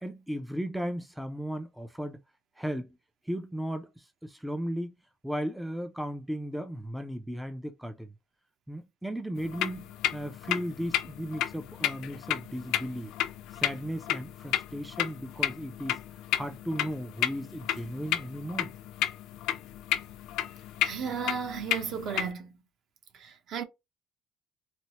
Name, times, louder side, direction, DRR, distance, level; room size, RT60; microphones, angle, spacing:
voice 1, 0.0-2.2 2.6-3.0 3.2-4.9 5.2-8.1 8.7-13.2 13.5-18.8, equal, 5° right, 0.4 m, -36 dB
sound 1, 9.4-22.3, left 12 dB, 75° left, 0.4 m, -33 dB
voice 2, 20.8-22.6 23.1-23.6, right 7 dB, 50° right, 0.7 m, -34 dB
4.2 x 2.0 x 2.8 m
cardioid pair, 160°, 0 cm